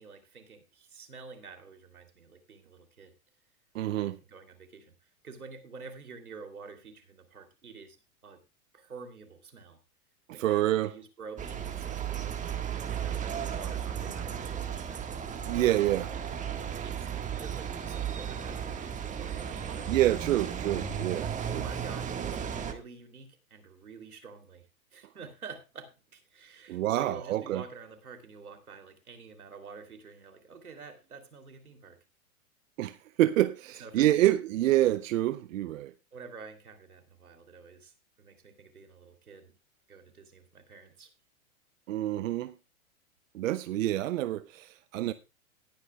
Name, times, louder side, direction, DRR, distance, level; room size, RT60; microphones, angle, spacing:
voice 1, 0.0-3.1 3.9-8.0 8.2-8.4 8.7-9.8 10.3-12.5 12.8-15.1 15.6-15.8 16.8-19.9 21.4-24.7 24.9-32.0 33.8-34.4 36.1-39.5 39.9-41.1, right 5 dB, 90° right, 3.1 m, -48 dB
voice 2, 3.7-4.2 10.3-10.9 15.4-16.1 19.9-21.6 26.7-27.6 32.8-35.9 41.9-42.5 43.3-45.1, right 14 dB, 65° right, 0.7 m, -27 dB
sound 1, 11.4-22.7, right 8 dB, 15° right, 1.5 m, -35 dB
19.0 x 9.5 x 2.3 m
hypercardioid pair, 115°, 43 cm